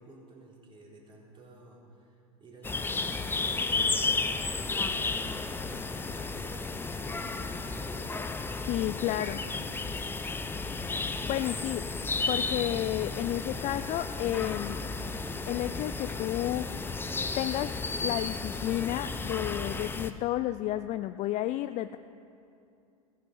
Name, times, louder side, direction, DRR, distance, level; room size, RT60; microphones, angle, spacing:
voice 1, 0.0-8.2 11.4-11.8, right 2 dB, 25° right, -3 dB, 4.3 m, -53 dB
sound 1, 2.6-20.1, left 3 dB, 10° left, 0.8 m, -33 dB
voice 2, 8.7-9.4 11.3-11.8 12.3-14.8 15.5-16.7 17.4-17.7 18.0-22.0, left 14 dB, 35° left, 11 dB, 0.4 m, -31 dB
15.5 x 15.5 x 5.5 m, 2.7 s
hypercardioid pair, 90°, 19 cm